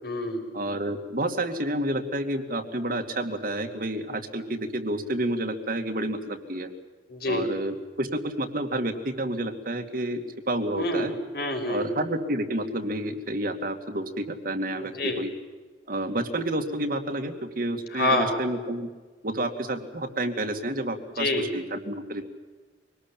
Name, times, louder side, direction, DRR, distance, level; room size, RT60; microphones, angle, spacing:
voice 1, 0.0-0.4 7.1-7.5 10.8-11.9 14.8-15.2 17.9-18.4 21.2-21.5, left 1 dB, 60° left, 3 dB, 5.4 m, -27 dB
voice 2, 0.5-6.7 7.3-11.1 11.7-15.3 15.9-18.9 19.2-22.2, right 1 dB, 55° right, 5 dB, 2.4 m, -30 dB
24.0 x 19.5 x 8.8 m, 1.4 s
head